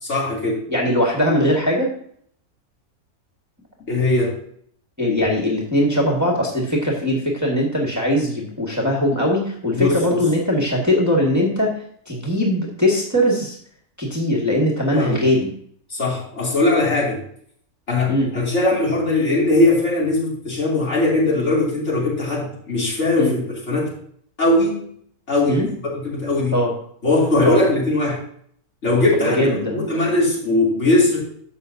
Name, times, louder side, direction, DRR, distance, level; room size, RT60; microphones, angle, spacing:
voice 1, 0.0-0.6 3.9-4.3 9.7-10.3 14.9-15.2 15.9-17.2 17.9-23.9 24.4-24.9 25.3-26.6 27.0-28.2 28.8-31.2, left 2 dB, 50° left, -5 dB, 3.1 m, -20 dB
voice 2, 0.7-1.9 5.0-11.7 12.1-13.6 14.0-15.5 18.1-18.3 23.2-23.3 25.5-25.7 26.5-26.7 27.4-27.6 29.2-29.7, left 1 dB, 10° right, -3 dB, 1.6 m, -20 dB
11.5 x 7.3 x 2.7 m, 0.63 s
omnidirectional pair, 1.6 m